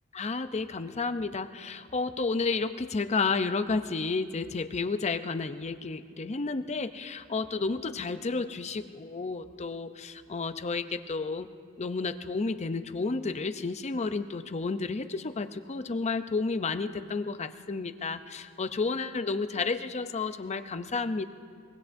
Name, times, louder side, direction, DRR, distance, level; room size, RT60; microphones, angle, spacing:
voice 1, 0.1-11.5 11.8-21.3, left 4 dB, 30° left, 10 dB, 0.5 m, -31 dB
24.0 x 22.5 x 2.6 m, 2.2 s
head